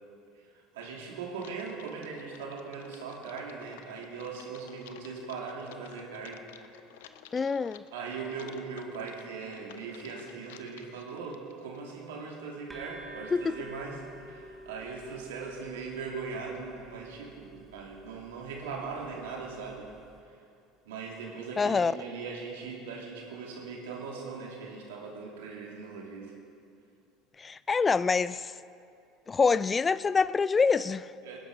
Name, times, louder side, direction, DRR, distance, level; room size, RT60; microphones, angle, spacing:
voice 1, 0.3-6.4 7.9-19.9 20.2-20.4 20.8-26.3 31.2-31.4, right 5 dB, 85° right, 2.8 m, -40 dB
Typing, 1.3-11.8, left 10 dB, 85° left, 0.6 m, -54 dB
voice 2, 7.3-7.8 13.3-13.5 21.6-21.9 27.4-28.5 29.3-31.1, left 5 dB, 25° left, 0.3 m, -26 dB
sound 1, 12.7-20.2, right 2 dB, 15° right, 2.0 m, -51 dB
19.5 x 10.5 x 5.3 m
supercardioid pair, 90°, 0 cm